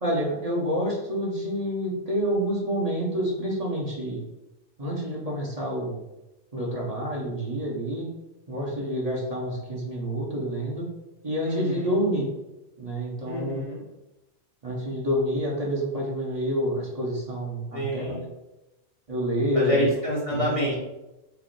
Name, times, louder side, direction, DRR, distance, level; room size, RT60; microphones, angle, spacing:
voice 1, 0.0-4.2 4.8-6.0 6.5-8.1 8.5-10.9 11.2-12.2 12.8-13.6 14.6-18.2 19.1-19.9 20.3-20.7, equal, 35° right, -4 dB, 1.0 m, -28 dB
voice 2, 11.5-11.9 13.2-13.8 17.7-18.2 19.5-20.8, equal, 30° left, -5 dB, 0.8 m, -27 dB
5.1 x 2.0 x 4.6 m, 0.97 s
omnidirectional pair, 1.2 m